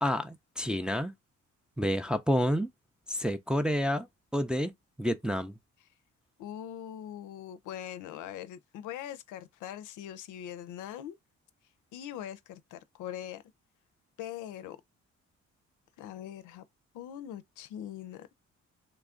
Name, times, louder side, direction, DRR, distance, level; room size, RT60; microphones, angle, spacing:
voice 1, 0.0-1.1 1.8-2.7 3.1-4.1 4.3-4.7 5.0-5.5, equal, 5° right, 0.4 m, -29 dB
voice 2, 6.4-11.2 11.9-13.4 14.2-14.8 16.0-16.6 16.9-18.3, left 11 dB, 85° left, 0.5 m, -42 dB
3.1 x 2.3 x 3.6 m
cardioid pair, 90°, 30 cm